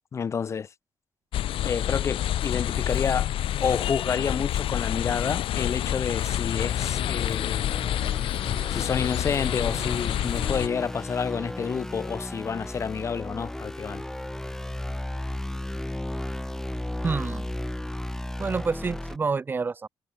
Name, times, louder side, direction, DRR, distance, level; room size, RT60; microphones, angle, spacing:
voice 1, 0.1-0.7 1.6-3.3 3.6-7.9 8.7-14.0, left 6 dB, 30° left, 0.4 m, -29 dB
sound 1, 1.3-10.7, left 12 dB, 85° left, 1.2 m, -28 dB
sound 2, 1.6-3.1 3.4-4.7 5.1-5.9 6.1-10.0 10.3-10.5, right 11 dB, 80° right, 4.7 m, -59 dB
sound 3, 5.8-19.2, left 1 dB, 5° left, 1.0 m, -35 dB
voice 2, 17.0-17.5 18.4-19.9, right 4 dB, 25° right, 0.5 m, -28 dB
cardioid pair, 145°, 9 cm